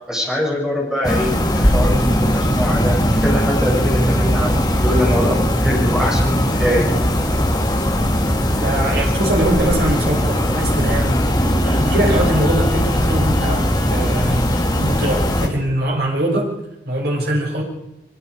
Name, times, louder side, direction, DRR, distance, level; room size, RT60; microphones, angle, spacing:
voice 1, 0.1-6.2 6.6-7.0, equal, 5° right, -3 dB, 7.4 m, -23 dB
sound 1, 1.0-15.5, equal, 20° left, 3.1 m, -18 dB
voice 2, 8.5-11.2 11.6-16.5 16.8-17.6, right 1 dB, 65° right, -1 dB, 6.4 m, -22 dB
24.0 x 23.0 x 4.9 m, 0.87 s
head